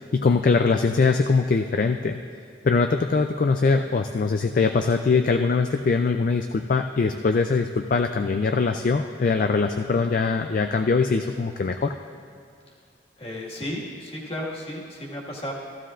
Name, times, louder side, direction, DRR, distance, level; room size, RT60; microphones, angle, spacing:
voice 1, 0.0-2.2 2.6-11.9, left 4 dB, 45° left, 6 dB, 0.3 m, -22 dB
voice 2, 13.2-15.5, left 1 dB, 30° left, -3 dB, 1.8 m, -33 dB
15.0 x 14.5 x 2.5 m, 2.3 s
head